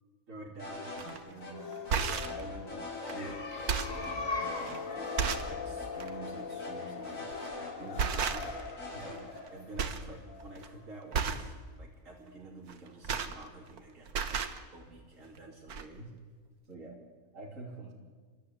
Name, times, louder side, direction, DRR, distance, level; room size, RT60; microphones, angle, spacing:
voice 1, 0.3-5.1 5.5-7.3 7.8-8.5 8.9-11.5 11.8-14.4 14.7-16.1 16.7-17.0 17.3-17.9, right 2 dB, 55° right, -2 dB, 3.5 m, -48 dB
sound 1, 0.6-1.2 1.4-1.5 1.9-3.3 3.6-3.7 4.0-5.5 5.8-5.9 6.2-8.1 8.4-9.2, left 2 dB, 85° left, 7.2 m, -43 dB
sound 2, 1.0-1.2 1.7-2.4 3.1-3.2 3.5-4.1 4.7-4.8 5.2-5.6 6.0-6.1 7.3-7.5 8.0-8.7 9.0-9.5 9.8-10.1 10.4-10.7 11.1-11.5 12.7-13.8 14.1-14.6 15.4-15.5 15.7-15.8, right 6 dB, 90° right, 1.7 m, -33 dB
sound 3, 1.3-10.8, left 4 dB, 60° left, 2.6 m, -40 dB
29.5 x 13.0 x 9.8 m, 1.5 s
omnidirectional pair, 1.6 m